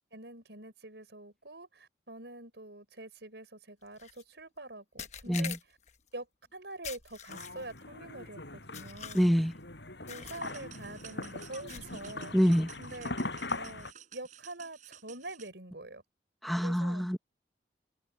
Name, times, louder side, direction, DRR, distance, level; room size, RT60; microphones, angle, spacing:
voice 1, 0.1-5.8 6.1-6.3 6.5-9.3 10.1-12.4 12.8-13.1 13.6-16.0 16.6-17.1, right 2 dB, 70° right, 5.5 m, -45 dB
sound 1, 4.0-4.2 5.0-6.0 6.8-7.8 8.7-9.5 10.1-10.5 10.8-11.0 11.7-12.1, left 8 dB, 40° left, 1.0 m, -45 dB
sound 2, 7.3-13.9, left 2 dB, 75° left, 7.6 m, -41 dB
voice 2, 9.1-9.5 12.3-12.7 16.4-17.2, equal, ahead, 0.7 m, -26 dB
sound 3, 10.4-15.5, right 9 dB, 45° right, 6.5 m, -53 dB
head